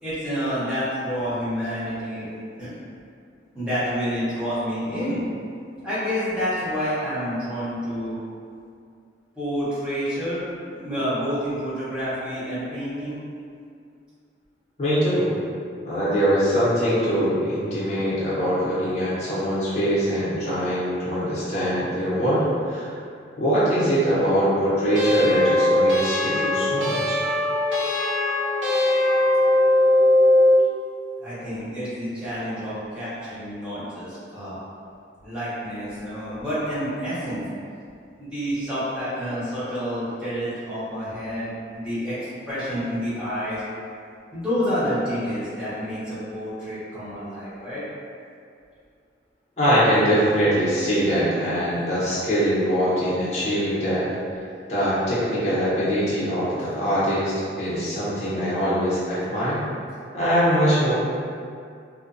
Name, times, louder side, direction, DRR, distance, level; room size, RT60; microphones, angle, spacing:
voice 1, 0.0-2.3 2.6-2.8 3.5-5.2 5.8-8.2 9.4-10.4 10.8-13.2 31.2-34.6 35.2-37.4 38.2-43.6 44.3-47.8, equal, 5° right, -13 dB, 0.8 m, -28 dB
voice 2, 14.8-15.3 15.9-22.9 23.4-27.2 49.6-54.1 54.7-59.6 60.1-60.9, equal, 35° left, -11 dB, 0.7 m, -22 dB
sound 1, 25.0-30.7, left 1 dB, 90° right, 0.6 m, -20 dB
2.5 x 2.2 x 2.5 m, 2.3 s
head